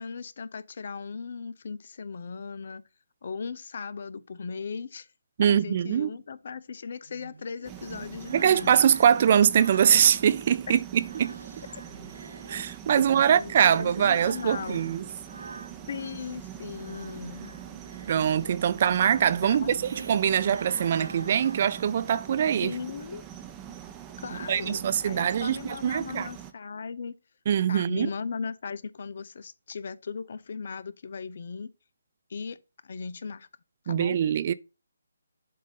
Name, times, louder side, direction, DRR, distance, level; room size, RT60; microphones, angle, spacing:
voice 1, 0.0-2.8 3.2-5.1 5.4-8.8 10.7-10.8 13.1-14.8 15.9-17.5 19.4-19.8 22.6-23.2 24.2-27.2 27.7-31.7 32.3-33.5 33.8-34.2, left 5 dB, 55° left, 0.6 m, -37 dB
voice 2, 5.4-6.1 8.3-11.4 12.5-15.0 18.1-19.8 20.1-22.7 24.5-26.3 27.5-28.1 33.9-34.5, right 9 dB, 40° right, 0.5 m, -23 dB
sound 1, 7.1-10.5 10.9-16.2 16.6-22.5, right 4 dB, 75° right, 0.9 m, -46 dB
sound 2, 7.6-26.5, right 10 dB, 15° right, 0.8 m, -44 dB
7.6 x 2.7 x 5.3 m
hypercardioid pair, 155°, 0 cm